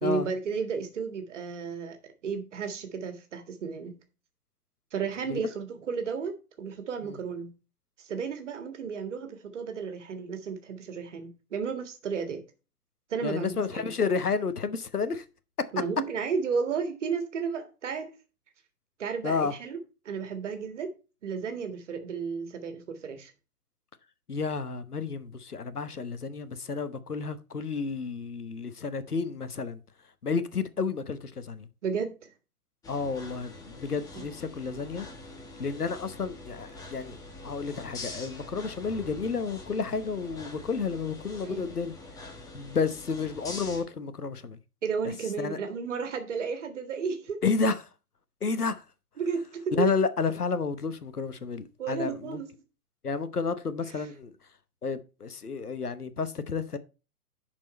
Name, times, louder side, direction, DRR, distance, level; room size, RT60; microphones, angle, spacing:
voice 1, 0.0-2.0 2.2-4.0 4.9-6.3 6.6-7.5 8.0-12.4 13.1-14.0 15.7-18.1 19.0-19.8 20.1-20.9 21.2-23.3 31.8-32.3 34.1-34.2 41.4-41.7 44.8-47.4 49.2-50.0 51.8-52.5 54.0-54.1, right 5 dB, 50° right, 1.8 m, -33 dB
voice 2, 13.2-15.2 19.2-19.5 24.3-29.8 30.2-31.7 32.9-35.1 35.6-37.2 37.4-41.9 42.5-44.6 45.4-45.6 47.4-47.9 48.4-48.8 49.7-52.4 53.0-54.3 54.8-56.8, left 5 dB, 80° left, 1.1 m, -31 dB
sound 1, 32.8-43.8, left 2 dB, 10° left, 1.1 m, -44 dB
10.5 x 4.6 x 4.3 m
figure-of-eight pair, 120°, 45 cm